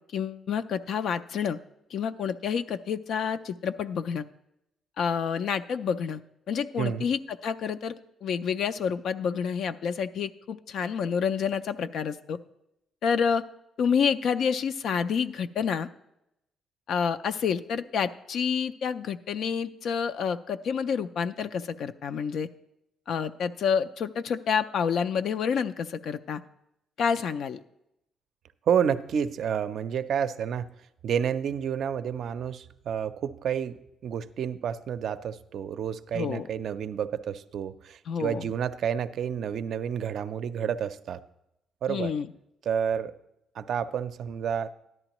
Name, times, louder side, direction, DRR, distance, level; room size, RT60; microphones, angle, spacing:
voice 1, 0.1-1.6 1.9-4.2 5.0-6.2 6.5-7.9 8.2-12.4 13.0-13.4 13.8-15.9 16.9-22.5 23.1-26.4 27.0-27.6 36.1-36.5 38.1-38.5 41.9-42.3, left 7 dB, 70° left, 9 dB, 0.3 m, -28 dB
voice 2, 28.7-30.7 31.0-33.7 34.0-41.2 41.8-42.1 42.7-43.1 43.6-44.7, right 8 dB, 70° right, 12 dB, 0.4 m, -29 dB
13.0 x 11.0 x 3.0 m, 0.84 s
cardioid pair, 90°, 0 cm